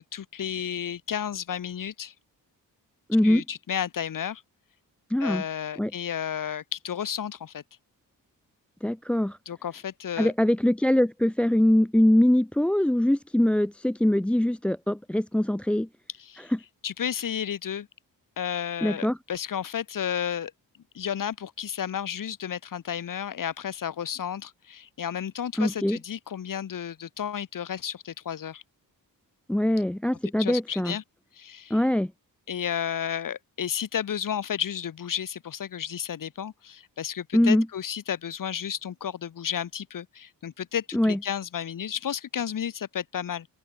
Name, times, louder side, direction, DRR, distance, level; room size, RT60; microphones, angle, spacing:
voice 1, 0.0-2.1 3.2-4.4 5.2-7.6 9.5-10.3 16.2-16.5 16.8-17.9 18.4-20.5 20.9-28.6 30.4-31.0 31.3-31.8 32.5-43.5, left 9 dB, 60° left, 1.9 m, -32 dB
voice 2, 3.1-3.4 5.1-5.4 5.8-5.9 8.8-9.4 10.2-15.9 16.4-16.6 18.8-19.2 25.6-26.0 29.5-31.0 31.7-32.1 37.3-37.7 40.9-41.2, left 1 dB, 5° left, 0.4 m, -23 dB
open air
wide cardioid pair, 175°, 37 cm